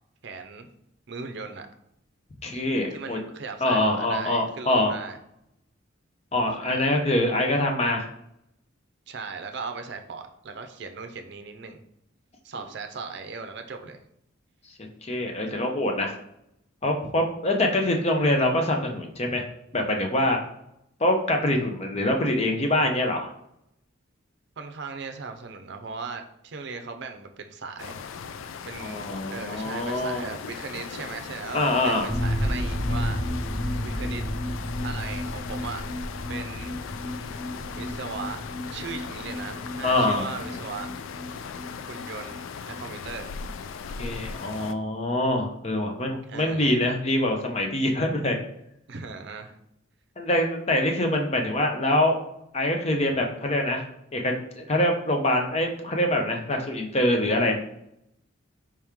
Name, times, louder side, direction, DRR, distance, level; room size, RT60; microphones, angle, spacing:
voice 1, 0.2-0.7 1.1-1.7 2.9-5.2 6.6-6.8 9.1-11.8 12.4-14.0 17.0-17.1 24.6-28.0 28.7-29.0 29.3-33.2 33.8-34.2 34.8-35.8 36.3-36.8 37.7-38.4 38.7-40.9 41.9-43.4 46.2-46.7 48.9-49.6, right 4 dB, 60° right, 6 dB, 0.5 m, -38 dB
voice 2, 2.4-3.2 3.6-4.9 6.3-8.1 14.8-16.1 16.8-19.4 19.7-20.4 21.0-23.3 28.8-30.3 31.5-32.1 39.8-40.3 44.0-48.4 50.2-52.2 52.5-53.8 54.1-57.6, left 1 dB, 30° left, 3 dB, 0.6 m, -24 dB
sound 1, 27.8-44.7, left 6 dB, 80° left, 0.3 m, -38 dB
sound 2, 32.1-41.7 41.9-42.0 42.3-42.4, equal, 5° left, 0.9 m, -32 dB
4.6 x 3.0 x 3.6 m, 0.79 s
head